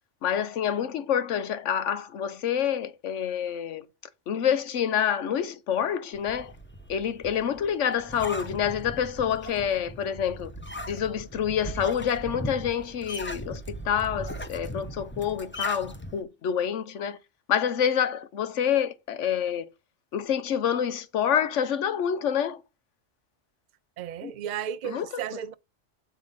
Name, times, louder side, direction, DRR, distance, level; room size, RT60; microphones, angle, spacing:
voice 1, 0.2-3.8 4.3-6.5 6.9-10.5 10.9-17.2 17.5-19.7 20.1-22.6 24.2-24.3 24.8-25.1, left 8 dB, 80° left, 1.1 m, -27 dB
sound 1, 6.1-16.2, equal, 10° left, 0.8 m, -38 dB
voice 2, 24.0-25.5, right 9 dB, 55° right, 0.5 m, -34 dB
6.9 x 4.5 x 5.5 m
omnidirectional pair, 1.2 m